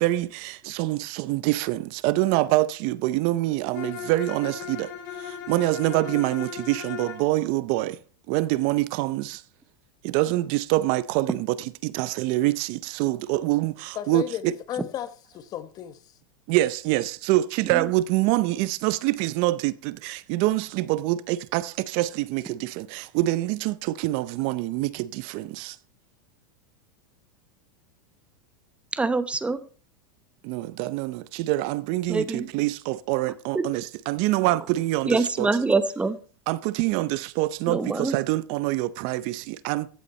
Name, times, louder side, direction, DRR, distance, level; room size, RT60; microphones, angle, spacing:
voice 1, 0.0-8.0 8.3-9.4 10.0-14.5 16.5-25.8 30.4-35.5 36.5-39.9, right 17 dB, 50° right, 0.6 m, -25 dB
Bowed string instrument, 3.7-7.3, left 7 dB, 60° left, 4.3 m, -37 dB
voice 2, 13.9-16.0, left 11 dB, 35° left, 1.1 m, -34 dB
voice 3, 28.9-29.6 32.1-32.5 33.5-33.6 35.0-36.2 37.7-38.1, right 3 dB, 10° right, 0.9 m, -25 dB
15.0 x 8.4 x 4.3 m
supercardioid pair, 130°, 11 cm